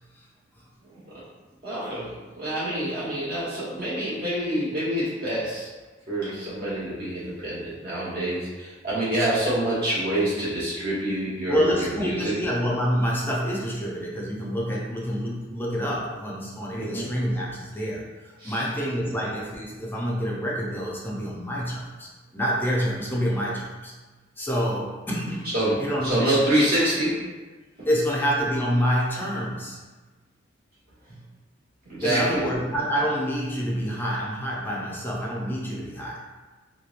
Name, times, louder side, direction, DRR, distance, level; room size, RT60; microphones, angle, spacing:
voice 1, 0.8-1.2 1.6-5.7 6.1-12.4 16.8-17.1 18.4-18.7 25.5-27.2 27.8-27.9 31.1-31.2 31.8-32.4, right 1 dB, 55° right, -9 dB, 1.1 m, -27 dB
voice 2, 11.5-18.1 18.4-23.9 24.4-25.5 25.8-26.4 27.9-29.8 32.0-36.2, equal, 10° left, -4 dB, 0.5 m, -27 dB
2.8 x 2.2 x 2.4 m, 1.3 s
head